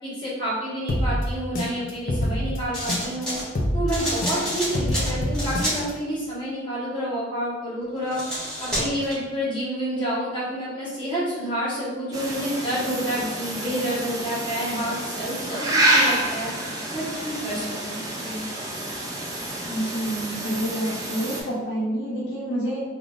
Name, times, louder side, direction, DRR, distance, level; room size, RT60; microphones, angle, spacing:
voice 1, 0.0-3.4 3.7-8.2 8.6-16.5 16.9-18.4, equal, 25° left, -10 dB, 1.3 m, -29 dB
sound 1, 0.9-3.2 3.5-5.9, equal, 45° left, 0.5 m, -26 dB
sound 2, 2.7-3.5 3.9-5.8 8.0-9.2, equal, 5° left, 1.2 m, -29 dB
sound 3, 12.1-21.4, right 1 dB, 20° right, 0.5 m, -28 dB
voice 2, 19.6-22.8, right 1 dB, 65° left, -8 dB, 0.9 m, -28 dB
3.5 x 2.5 x 2.4 m, 1.2 s
head